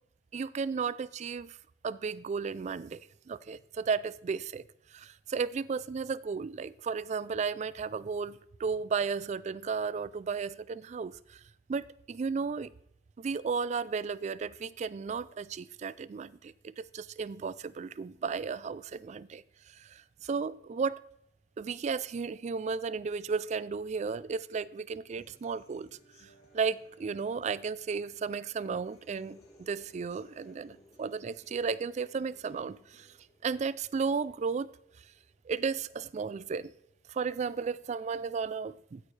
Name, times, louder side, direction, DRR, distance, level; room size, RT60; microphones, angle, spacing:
voice 1, 0.3-1.6 1.8-4.6 4.9-11.4 11.7-12.7 13.2-21.0 21.6-25.9 26.2-33.1 33.4-34.7 35.5-36.7 37.1-39.0, right 5 dB, 40° right, 0.3 m, -34 dB
Human voice / Acoustic guitar, 25.2-33.2, right 1 dB, 60° left, 2.6 m, -62 dB
sound 1, 28.7-36.3, left 1 dB, 20° left, 0.9 m, -64 dB
15.5 x 8.9 x 3.2 m
head